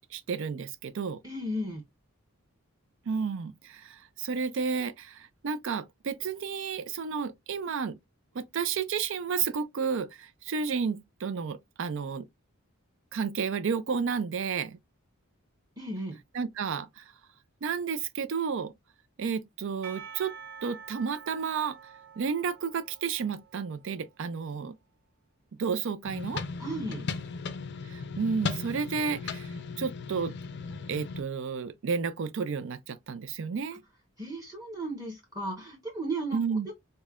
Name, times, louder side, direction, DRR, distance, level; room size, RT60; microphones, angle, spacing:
voice 1, 0.1-1.2 3.1-8.0 8.3-12.3 13.1-14.8 16.3-17.0 17.6-18.7 19.2-20.3 20.6-21.8 22.2-24.8 25.6-26.4 27.9-30.3 30.9-33.8 36.3-36.7, right 6 dB, 60° right, 0.4 m, -31 dB
voice 2, 1.2-1.8 15.8-16.2 26.6-27.1 34.2-36.7, right 1 dB, 15° right, 1.0 m, -35 dB
Percussion / Church bell, 19.8-24.2, right 6 dB, 45° right, 1.0 m, -48 dB
sound 1, 26.0-31.2, left 4 dB, 50° left, 0.5 m, -37 dB
5.2 x 2.1 x 2.4 m
head